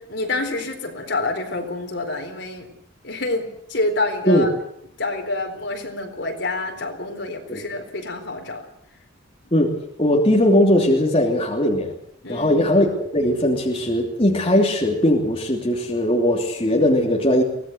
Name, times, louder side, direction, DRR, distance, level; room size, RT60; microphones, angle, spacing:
voice 1, 0.1-2.7 3.0-4.5 5.0-8.7 12.2-12.5, left 2 dB, 55° left, 4 dB, 4.2 m, -27 dB
voice 2, 10.0-11.9 12.3-17.4, left 1 dB, 30° left, -1 dB, 3.0 m, -19 dB
23.5 x 18.0 x 8.0 m, 0.72 s
head